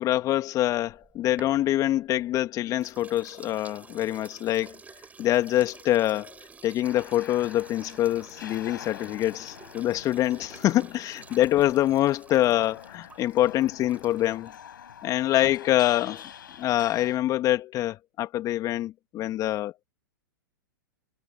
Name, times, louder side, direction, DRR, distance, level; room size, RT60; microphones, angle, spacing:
voice 1, 0.0-4.8 5.2-6.4 6.6-14.5 15.0-16.3 16.6-19.8, left 14 dB, 30° left, 2.4 m, -25 dB
sound 1, 0.8-2.4 2.8-14.5, right 5 dB, 15° right, 5.5 m, -50 dB
sound 2, 6.8-17.2, left 9 dB, 70° left, 5.1 m, -45 dB
hypercardioid pair, 110°, 11 cm